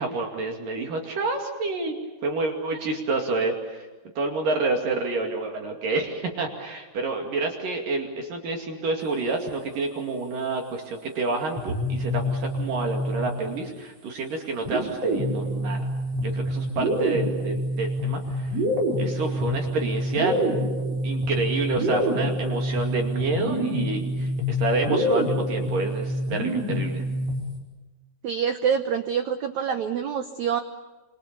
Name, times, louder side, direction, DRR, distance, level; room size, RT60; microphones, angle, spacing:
voice 1, 0.0-1.9 2.2-3.9 4.2-15.9 16.2-18.5 19.0-20.5 21.0-27.0, right 3 dB, 55° right, 2 dB, 3.8 m, -29 dB
sound 1, 11.6-13.7 14.7-27.6, equal, 40° right, 5.7 m, -26 dB
voice 2, 28.2-30.6, right 7 dB, 80° right, 8 dB, 1.6 m, -26 dB
27.5 x 27.0 x 7.0 m, 1.3 s
omnidirectional pair, 4.7 m